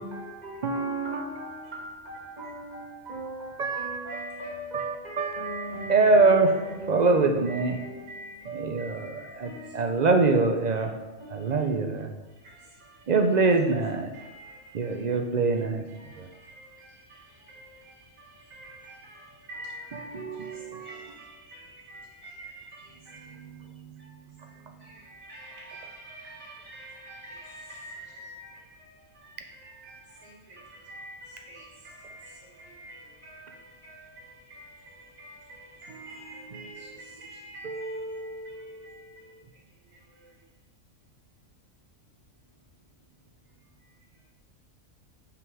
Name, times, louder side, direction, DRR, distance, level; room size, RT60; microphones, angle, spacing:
voice 1, 0.0-8.3 9.4-10.0 11.2-11.8, equal, 35° right, 1.7 m, -41 dB
voice 2, 0.6-1.7 3.6-4.3 4.7-6.6 6.9-7.8 8.5-10.9 11.3-12.1 13.1-14.1 14.7-15.8 16.2-16.3 20.1-20.9 23.2-24.1 37.6-39.2, right 3 dB, 50° right, 0.5 m, -25 dB
voice 3, 4.1-4.5 5.4-6.1 6.6-7.0 7.5-9.9 10.7-10.8 11.2-11.7 12.3-13.6 14.1-15.0 15.5-15.6 15.9-23.4 24.0-40.5 43.5-44.3, right 1 dB, 90° right, 2.4 m, -47 dB
5.8 x 5.5 x 4.7 m
omnidirectional pair, 1.4 m